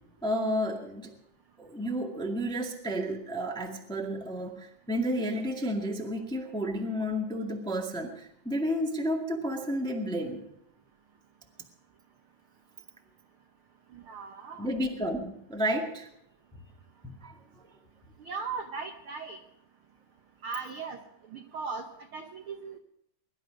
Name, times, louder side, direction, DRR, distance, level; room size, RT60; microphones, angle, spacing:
voice 1, 0.2-1.2 1.6-10.4 14.6-16.1 17.0-17.6, equal, ahead, 0 dB, 1.0 m, -31 dB
voice 2, 13.9-14.7 18.2-19.4 20.4-21.0 21.3-21.8 22.1-22.8, right 5 dB, 75° right, 5 dB, 1.2 m, -38 dB
21.5 x 12.0 x 5.1 m, 0.74 s
omnidirectional pair, 3.8 m